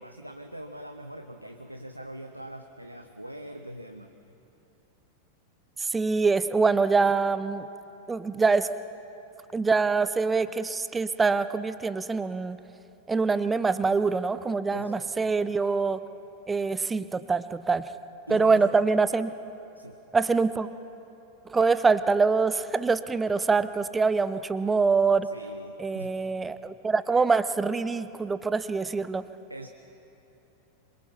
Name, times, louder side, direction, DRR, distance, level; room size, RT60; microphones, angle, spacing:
voice 1, 0.0-4.1 14.7-15.3 18.3-18.7 19.7-20.0 25.2-26.2 29.5-29.7, right 1 dB, 85° right, 6 dB, 1.0 m, -42 dB
voice 2, 5.8-7.7 8.1-8.7 9.5-12.6 13.1-16.0 16.5-17.9 18.3-19.3 20.1-20.7 21.5-25.3 25.8-29.2, right 4 dB, 15° right, 14 dB, 0.8 m, -24 dB
26.5 x 22.5 x 5.7 m, 2.9 s
figure-of-eight pair, 90°, 0 cm